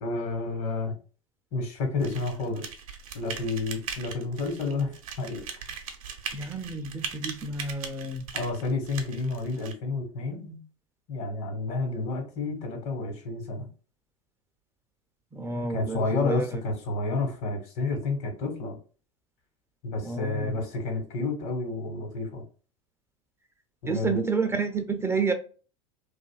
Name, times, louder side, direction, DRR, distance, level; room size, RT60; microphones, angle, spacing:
voice 1, 0.0-0.9 1.5-2.7 3.1-5.4 8.3-10.6 11.1-13.7 15.5-18.8 19.8-22.4 23.8-24.2, left 3 dB, 65° left, 1.1 m, -30 dB
sound 1, 2.0-9.7, right 6 dB, 80° right, 0.6 m, -39 dB
voice 2, 6.3-8.3 15.3-16.5 20.0-20.6 23.9-25.3, right 4 dB, 15° right, 0.4 m, -30 dB
2.6 x 2.4 x 2.2 m
hypercardioid pair, 85°, 18 cm